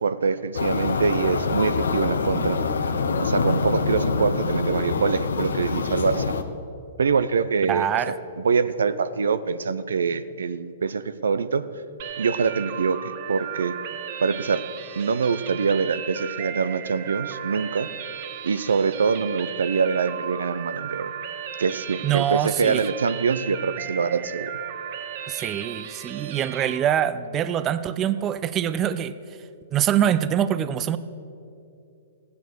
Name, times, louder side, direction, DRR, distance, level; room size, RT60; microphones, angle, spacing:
voice 1, 0.0-2.6 3.2-6.3 7.0-8.1 8.4-11.6 12.2-13.7 14.2-14.6 15.0-17.9 18.4-21.1 21.6-24.5, right 5 dB, 85° right, 14 dB, 0.6 m, -24 dB
sound 1, 0.5-6.4, left 4 dB, 85° left, 1.0 m, -25 dB
voice 2, 7.7-8.1 22.0-22.8 25.3-29.1 29.7-31.0, right 10 dB, 25° right, 14 dB, 0.5 m, -24 dB
sound 2, 12.0-26.8, right 9 dB, 55° right, 0.9 m, -35 dB
15.0 x 9.6 x 6.2 m, 2.6 s
hypercardioid pair, 125°, 0 cm